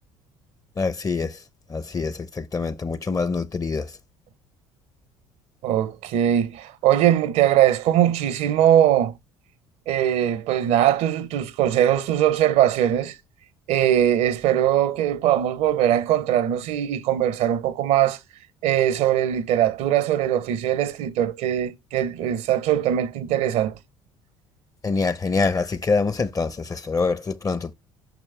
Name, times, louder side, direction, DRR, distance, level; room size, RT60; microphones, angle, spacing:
voice 1, 0.8-1.4 1.7-3.9 24.8-27.7, left 4 dB, 25° left, 0.9 m, -25 dB
voice 2, 5.6-9.1 9.9-13.1 13.7-18.2 18.6-23.8, right 11 dB, 70° right, 1.0 m, -21 dB
6.2 x 6.0 x 3.4 m
hypercardioid pair, 65°, 13 cm